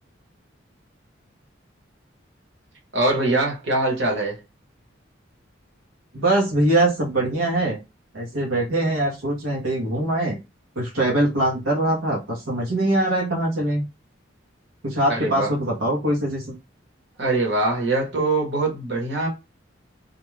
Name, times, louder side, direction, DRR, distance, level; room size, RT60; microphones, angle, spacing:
voice 1, 2.9-4.4 15.1-15.5 17.2-19.3, right 2 dB, 60° right, 1.1 m, -23 dB
voice 2, 6.1-7.8 8.1-10.4 10.8-13.8 14.8-16.5, right 1 dB, 85° right, 1.0 m, -22 dB
2.5 x 2.3 x 3.1 m
head